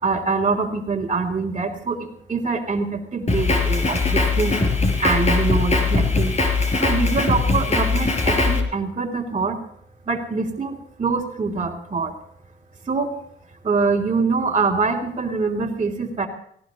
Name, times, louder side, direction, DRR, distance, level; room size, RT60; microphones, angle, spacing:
voice 1, 0.0-4.5 5.0-6.4 6.8-9.6 10.0-12.2 12.8-13.2 13.6-16.3, right 4 dB, 30° right, -5 dB, 3.2 m, -24 dB
Drum kit, 3.3-8.6, left 3 dB, 35° left, 4.9 m, -20 dB
18.5 x 18.0 x 4.0 m, 0.67 s
cardioid pair, 90°, 20 cm